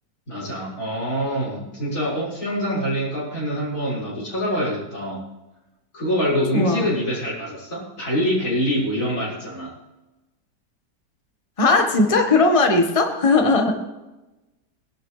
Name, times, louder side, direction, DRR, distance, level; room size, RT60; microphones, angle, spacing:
voice 1, 0.3-5.2 5.9-9.7, equal, 45° left, -7 dB, 6.9 m, -25 dB
voice 2, 6.5-6.8 11.6-13.7, left 3 dB, 20° left, 3 dB, 1.4 m, -18 dB
21.0 x 12.0 x 3.3 m, 1.0 s
omnidirectional pair, 1.9 m